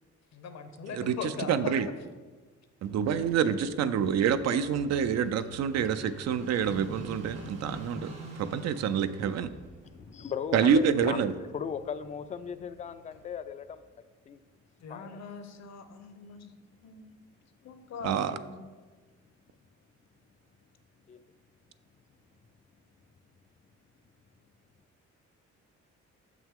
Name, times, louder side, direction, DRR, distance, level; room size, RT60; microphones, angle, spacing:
voice 1, 0.3-1.8 14.8-16.5 16.8-17.1 17.6-18.6, left 5 dB, 60° left, 9 dB, 0.8 m, -41 dB
voice 2, 0.9-1.9 2.8-8.1 8.4-9.5 10.5-11.3 18.0-18.4, right 7 dB, 60° right, 12 dB, 0.4 m, -27 dB
Car passing by / Idling, 2.9-13.5, right 1 dB, 85° right, 1.4 m, -47 dB
voice 3, 9.8-11.2 11.5-13.8 14.3-14.4 14.9-15.2 17.6-17.7 21.1-21.2, left 7 dB, 25° left, 12 dB, 0.3 m, -37 dB
6.5 x 6.0 x 3.6 m, 1.4 s
cardioid pair, 90°, 30 cm